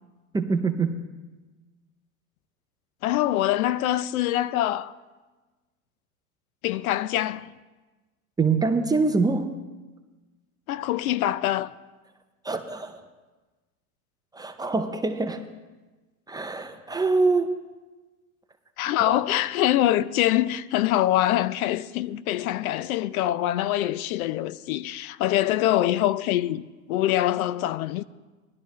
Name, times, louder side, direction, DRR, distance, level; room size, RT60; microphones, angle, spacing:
voice 1, 0.3-1.0 8.4-9.6 12.4-13.0 14.3-15.5 16.3-17.6, right 4 dB, 10° right, 0.5 m, -24 dB
voice 2, 3.0-4.9 6.6-7.5 10.7-11.7 18.8-26.6 26.9-28.0, left 13 dB, 75° left, 0.6 m, -24 dB
17.5 x 11.5 x 3.1 m
hypercardioid pair, 110°, 44 cm